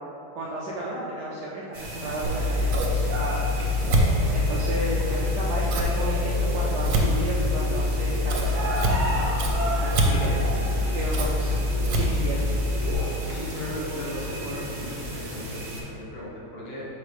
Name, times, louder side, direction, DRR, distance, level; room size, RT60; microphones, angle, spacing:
voice 1, 0.4-3.4 4.3-8.5 9.6-10.3 10.8-11.4 11.9-12.5, right 1 dB, 70° right, -6 dB, 1.0 m, -33 dB
sound 1, 1.7-15.8, equal, 55° right, 1.6 m, -33 dB
Scissors, 2.2-12.9, left 1 dB, 90° right, 1.7 m, -25 dB
voice 2, 13.2-16.9, equal, 65° left, -7 dB, 2.0 m, -37 dB
6.9 x 4.7 x 3.3 m, 2.9 s
omnidirectional pair, 2.3 m